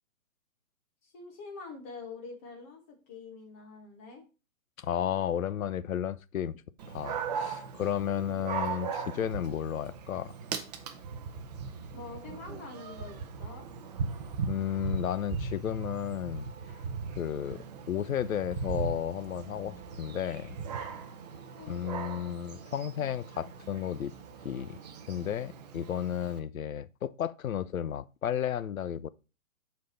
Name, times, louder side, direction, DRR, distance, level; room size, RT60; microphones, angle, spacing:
voice 1, 1.0-4.2 8.1-8.4 11.9-13.7 21.6-21.8, left 4 dB, 10° left, 0.5 m, -45 dB
voice 2, 4.8-6.6 6.9-10.3 14.5-16.5 17.2-17.6 17.9-20.6 21.7-24.1 24.4-24.8 25.1-29.1, left 9 dB, 85° left, 0.5 m, -33 dB
Dog, 6.8-26.4, right 5 dB, 30° right, 0.6 m, -39 dB
Wind instrument woodwind instrument, 16.2-25.4, right 4 dB, 45° right, 1.2 m, -59 dB
6.4 x 4.1 x 4.1 m
figure-of-eight pair, 130°, 41 cm